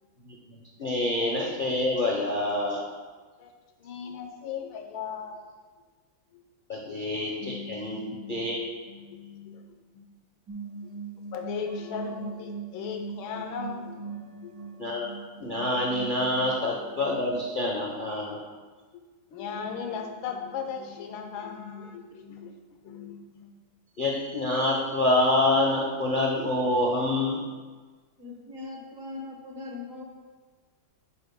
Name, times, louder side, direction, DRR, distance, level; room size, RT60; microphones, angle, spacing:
voice 1, 0.2-2.8 6.7-8.0 8.3-8.6 14.8-15.1 15.4-18.4 24.0-27.4, left 1 dB, 40° left, -2 dB, 0.7 m, -26 dB
voice 2, 3.8-5.5 6.3-6.4 6.8-7.0 7.4-9.7 9.9-10.0 11.3-14.5 19.3-22.5 22.8-23.5, left 6 dB, 75° left, 4 dB, 1.6 m, -38 dB
sound 1, 10.5-17.3, right 4 dB, 65° right, 2.3 m, -40 dB
voice 3, 28.2-30.0, left 3 dB, 50° right, 0 dB, 1.2 m, -40 dB
10.0 x 8.7 x 2.2 m, 1.4 s
omnidirectional pair, 2.2 m